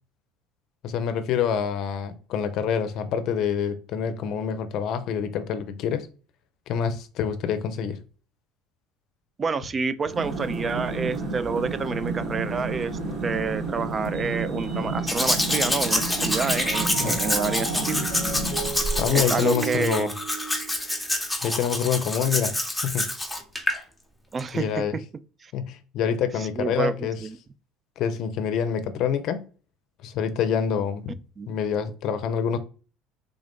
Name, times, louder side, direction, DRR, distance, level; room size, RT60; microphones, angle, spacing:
voice 1, 0.8-6.1 6.7-8.0 17.0-17.2 19.0-20.1 21.4-22.6 22.8-23.0 24.5-25.0 25.5-27.2 28.0-29.4 30.0-31.1 31.5-32.6, left 7 dB, 65° left, 0.5 m, -26 dB
voice 2, 9.4-18.0 19.1-20.1 24.3-25.0 25.4-25.5 26.4-26.9 27.2-27.4 31.4-31.6, right 5 dB, 35° right, 0.4 m, -28 dB
sound 1, 10.1-19.3, right 2 dB, 50° right, 1.2 m, -31 dB
Mallet percussion, 14.1-15.5 15.9-21.3, right 6 dB, 80° right, 1.6 m, -37 dB
Domestic sounds home sounds, 15.1-23.8 24.4-24.5, left 1 dB, 5° left, 0.8 m, -27 dB
3.5 x 2.5 x 3.5 m
supercardioid pair, 85°, 0 cm